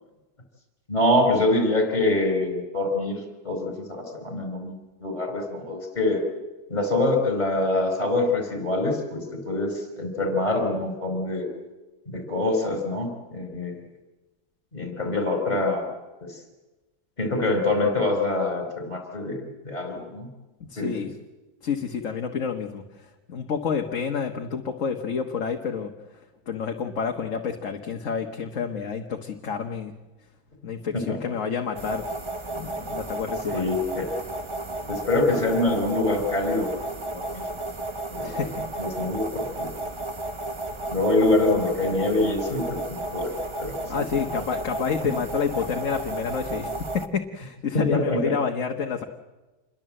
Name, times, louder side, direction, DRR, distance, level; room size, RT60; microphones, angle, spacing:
voice 1, 0.9-3.2 3.4-4.7 5.0-6.2 6.7-11.5 12.1-13.7 14.7-15.9 16.2-16.4 17.2-20.3 20.8-21.1 30.9-31.2 33.5-34.1 34.9-36.7 37.1-37.4 38.1-38.5 38.8-39.7 40.9-44.0 44.4-44.5 47.7-48.3, left 2 dB, 25° left, 3 dB, 5.1 m, -25 dB
voice 2, 20.7-21.1 21.6-25.9 26.5-29.9 30.6-32.1 32.5-33.7 38.2-38.5 43.9-49.1, left 6 dB, 55° left, 3 dB, 1.6 m, -29 dB
sound 1, 31.8-47.1, right 2 dB, 20° right, 0.9 m, -33 dB
27.5 x 22.0 x 7.7 m, 1.1 s
omnidirectional pair, 1.6 m